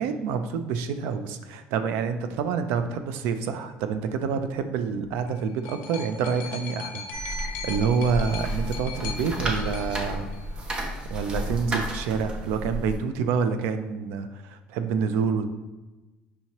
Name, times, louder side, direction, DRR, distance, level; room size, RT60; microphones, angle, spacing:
voice 1, 0.0-10.3 10.6-15.5, right 6 dB, 85° right, 9 dB, 0.4 m, -28 dB
sound 1, 5.0-11.0 11.9-12.0, left 6 dB, 85° left, 0.5 m, -40 dB
sound 2, 7.1-13.0, right 1 dB, 25° right, 0.7 m, -32 dB
5.4 x 2.9 x 2.9 m, 1.1 s
cardioid pair, 145°, 4 cm